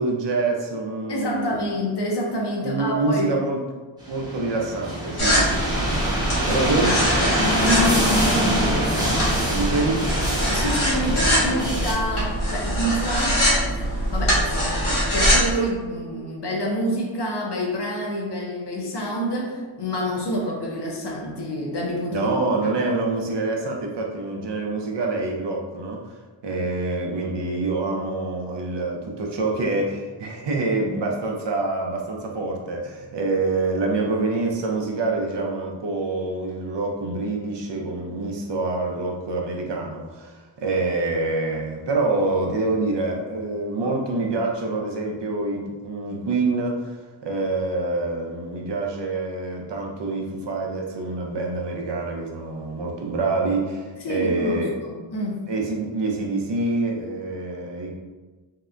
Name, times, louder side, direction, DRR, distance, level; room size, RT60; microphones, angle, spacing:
voice 1, 0.0-1.6 2.6-3.6 4.1-6.0 6.5-6.9 9.5-10.0 22.1-26.0 26.4-47.0 47.2-54.7 55.5-57.9, right 3 dB, 60° right, 0 dB, 0.5 m, -26 dB
voice 2, 1.1-3.3 6.5-7.4 10.5-13.7 14.1-22.7 53.9-55.4, equal, 55° left, -1 dB, 0.6 m, -28 dB
sound 1, 4.1-11.9, equal, 10° right, 0.6 m, -24 dB
sound 2, 5.2-15.5, equal, 85° left, 0.9 m, -23 dB
2.7 x 2.1 x 2.4 m, 1.3 s
wide cardioid pair, 75°, 48 cm